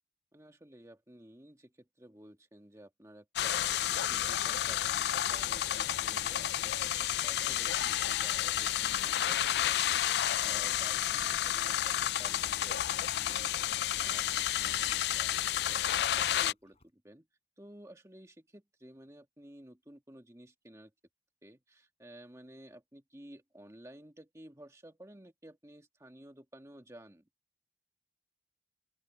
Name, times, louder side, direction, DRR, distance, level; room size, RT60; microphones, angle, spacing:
voice 1, 0.3-17.3 17.6-20.9 21.4-27.3, right 1 dB, 15° right, 1.6 m, -54 dB
sound 1, 3.4-16.5, left 11 dB, 65° left, 0.3 m, -31 dB
sound 2, 9.7-11.0 11.2-16.9, left 5 dB, 35° left, 6.3 m, -55 dB
open air
head